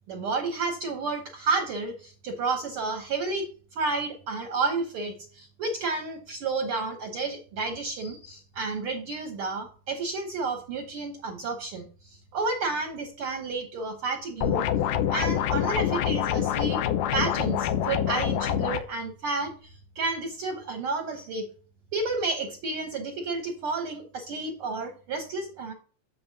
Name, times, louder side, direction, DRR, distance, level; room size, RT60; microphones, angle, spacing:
voice 1, 0.1-14.6 15.1-16.8 17.1-21.4 21.9-25.7, right 3 dB, 70° right, 4 dB, 1.3 m, -31 dB
sound 1, 14.4-18.8, left 10 dB, 80° left, 2.2 m, -26 dB
7.7 x 7.3 x 2.8 m, 0.40 s
omnidirectional pair, 3.9 m